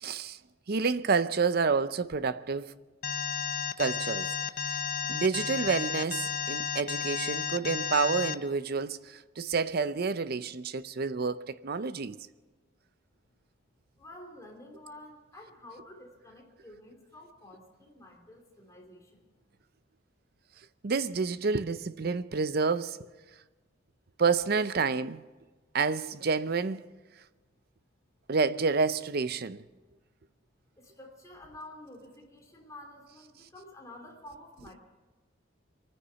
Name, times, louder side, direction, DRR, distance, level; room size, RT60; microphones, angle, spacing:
voice 1, 0.0-0.4 0.7-2.7 3.8-4.4 4.6-4.8 5.1-12.2 20.8-23.0 24.2-25.2 25.7-26.8 28.3-29.6, right 4 dB, 50° right, 0.6 m, -29 dB
Alarm, 3.0-8.3, left 8 dB, 45° left, 0.6 m, -32 dB
voice 2, 14.0-19.3 30.8-34.8, left 1 dB, 15° left, 3.0 m, -50 dB
24.5 x 9.8 x 5.8 m
head